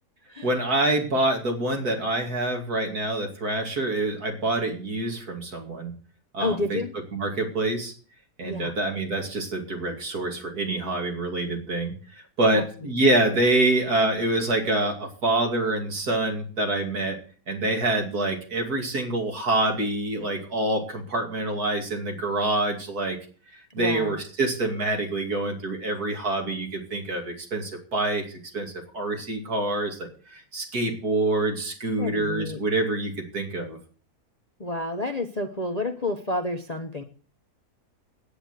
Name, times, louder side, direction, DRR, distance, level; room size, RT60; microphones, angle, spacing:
voice 1, 0.4-5.9 6.3-6.8 7.1-7.9 8.4-11.9 12.4-17.2 17.5-23.2 23.7-33.8, right 2 dB, 65° right, 3 dB, 3.1 m, -26 dB
voice 2, 6.4-6.9 8.4-8.8 12.5-12.6 23.8-24.2 32.0-32.6 34.6-37.0, left 2 dB, 30° left, 6 dB, 0.8 m, -29 dB
10.0 x 9.1 x 8.1 m, 0.42 s
omnidirectional pair, 1.8 m